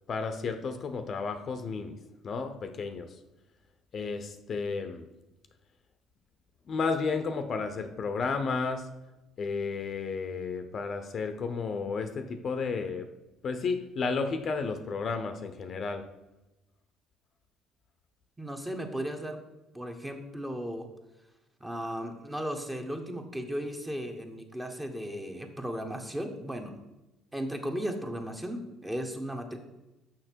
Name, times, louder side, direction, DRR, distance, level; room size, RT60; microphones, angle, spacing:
voice 1, 0.1-2.0 2.2-3.1 3.9-5.0 6.7-8.9 9.4-13.1 13.4-16.0, left 4 dB, 45° left, 8 dB, 0.7 m, -32 dB
voice 2, 18.4-19.4 19.7-20.9 21.6-26.7 27.3-29.6, equal, 10° right, 4 dB, 1.1 m, -36 dB
6.5 x 5.8 x 4.5 m, 1.0 s
supercardioid pair, 90°, 0 cm